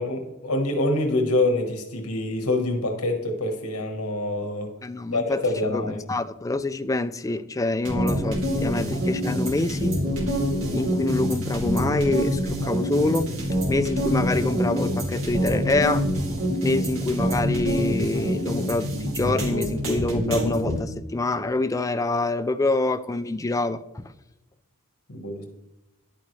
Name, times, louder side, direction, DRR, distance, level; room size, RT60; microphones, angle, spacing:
voice 1, 0.0-4.7 5.1-6.0 25.1-25.5, left 2 dB, 80° left, 1.3 m, -25 dB
voice 2, 4.8-5.4 5.7-10.0 10.7-13.3 13.7-16.1 16.6-24.0, left 2 dB, 15° left, 0.4 m, -26 dB
sound 1, 7.9-20.8, equal, 60° right, 2.7 m, -26 dB
10.5 x 8.6 x 3.2 m
head